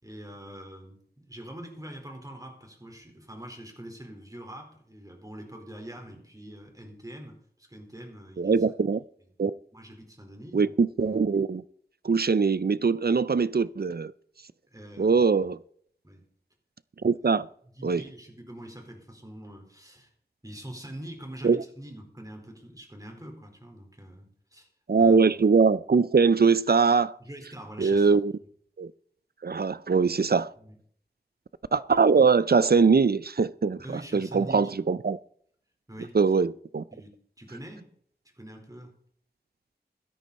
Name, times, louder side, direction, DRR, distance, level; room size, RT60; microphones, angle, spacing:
voice 1, 0.0-8.7 9.7-10.7 14.7-15.2 16.0-16.2 17.8-20.1 20.4-24.7 25.0-25.2 27.2-28.1 30.6-30.7 33.8-34.7 35.9-36.2 36.9-37.9 38.4-38.9, right 1 dB, 20° right, 4.3 m, -44 dB
voice 2, 8.4-9.0 9.4-9.5 10.5-11.6 12.0-14.1 15.0-15.6 17.0-17.5 17.8-18.0 21.4-21.6 24.9-27.1 27.8-28.3 28.8-28.9 29.4-30.5 31.7-33.8 34.1-35.2 36.1-36.8, right 5 dB, 65° right, 0.5 m, -22 dB
16.5 x 12.5 x 4.2 m
wide cardioid pair, 40°, 17 cm